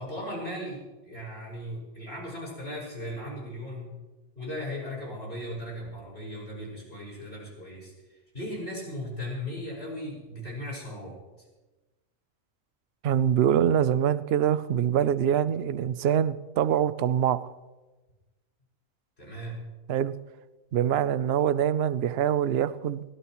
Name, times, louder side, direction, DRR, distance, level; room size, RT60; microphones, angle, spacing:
voice 1, 0.0-4.0 4.3-11.2 19.2-19.7, left 1 dB, 50° left, -4 dB, 6.3 m, -37 dB
voice 2, 13.0-17.5 19.9-20.2 20.7-23.0, right 9 dB, 60° right, 14 dB, 0.8 m, -24 dB
22.5 x 17.0 x 3.1 m, 1.1 s
omnidirectional pair, 1.4 m